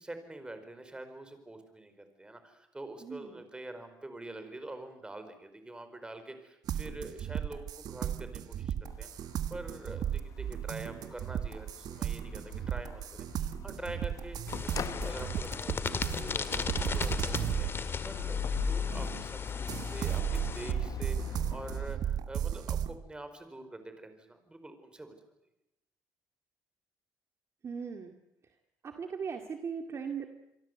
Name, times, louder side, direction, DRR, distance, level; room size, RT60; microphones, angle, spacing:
voice 1, 0.0-9.1 9.5-14.4 14.6-25.1, right 2 dB, 10° right, 9 dB, 4.7 m, -45 dB
sound 1, 6.7-19.3 19.7-23.0, right 10 dB, 65° right, 1.3 m, -35 dB
sound 2, 8.9-21.9, left 8 dB, 50° left, 1.0 m, -39 dB
sound 3, 14.5-20.7, left 5 dB, 35° left, 1.8 m, -38 dB
voice 2, 27.6-28.1 28.8-30.3, right 6 dB, 40° right, 5 dB, 2.2 m, -38 dB
27.5 x 23.5 x 8.0 m, 0.85 s
cardioid pair, 105°, 7 cm